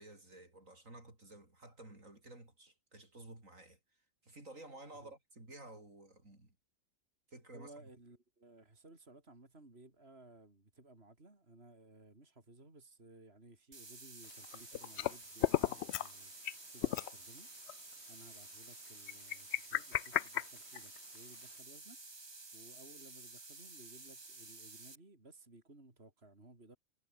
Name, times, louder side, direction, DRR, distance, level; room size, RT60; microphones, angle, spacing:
voice 1, 0.0-6.5 7.3-7.7, right 2 dB, 80° right, 6.7 m, -54 dB
voice 2, 7.5-17.5 18.1-26.8, right 2 dB, 50° right, 4.6 m, -59 dB
sound 1, 13.7-25.0, right 3 dB, 20° right, 1.1 m, -52 dB
sound 2, 14.3-15.1 15.4-16.1 16.4-16.5 16.8-17.1 17.7-17.8 19.1-21.2, left 12 dB, 65° left, 0.8 m, -34 dB
omnidirectional pair, 1.4 m